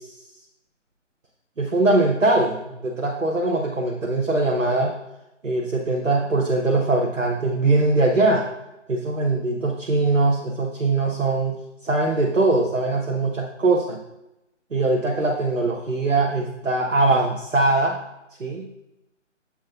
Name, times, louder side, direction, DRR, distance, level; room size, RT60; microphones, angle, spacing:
voice 1, 1.6-4.9 5.4-8.5 8.9-14.0 14.7-18.0 18.4-18.7, right 2 dB, 90° right, 0 dB, 0.9 m, -21 dB
7.2 x 7.2 x 2.4 m, 0.91 s
figure-of-eight pair, 145°, 37 cm